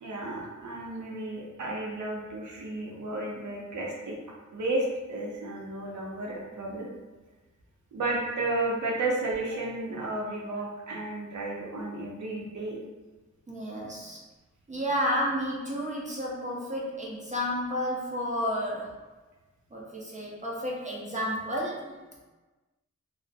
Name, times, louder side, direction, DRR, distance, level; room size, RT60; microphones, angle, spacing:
voice 1, 0.0-4.2 4.5-6.9 7.9-12.8, right 2 dB, 75° right, -2 dB, 0.6 m, -32 dB
voice 2, 13.5-14.2 14.7-19.0 19.7-21.9, equal, 25° right, -4 dB, 0.4 m, -31 dB
2.4 x 2.0 x 2.5 m, 1.2 s
wide cardioid pair, 120°, 30 cm